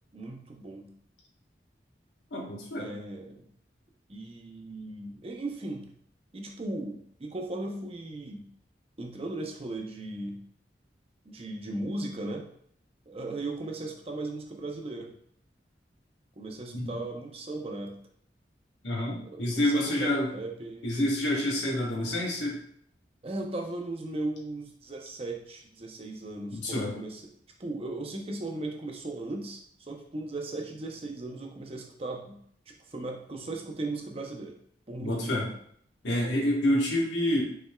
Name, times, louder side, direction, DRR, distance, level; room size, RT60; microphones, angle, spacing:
voice 1, 0.1-0.9 2.8-3.5 4.1-5.9 6.3-8.5 9.0-10.4 11.3-12.5 13.1-15.1 16.4-18.0 19.2-20.9 23.2-27.2 27.6-29.6 29.9-32.4 32.7-34.5 34.9-35.3, right 2 dB, 35° right, 1 dB, 0.7 m, -37 dB
voice 2, 2.3-2.9 16.7-16.9 18.8-20.3 20.8-22.6 26.5-26.9 35.0-35.5 36.0-37.4, left 1 dB, 85° left, -3 dB, 1.3 m, -28 dB
5.4 x 3.4 x 2.3 m, 0.64 s
head